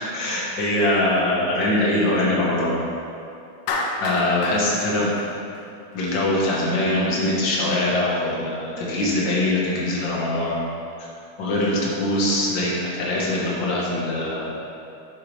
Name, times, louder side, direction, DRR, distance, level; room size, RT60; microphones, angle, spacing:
voice 1, 0.1-2.8 4.0-5.1 5.9-10.6 11.4-14.5, left 1 dB, 55° left, -4 dB, 1.4 m, -22 dB
Clapping, 3.7-6.0, left 3 dB, 85° left, 2.4 m, -29 dB
10.0 x 7.0 x 3.3 m, 2.6 s
omnidirectional pair, 3.7 m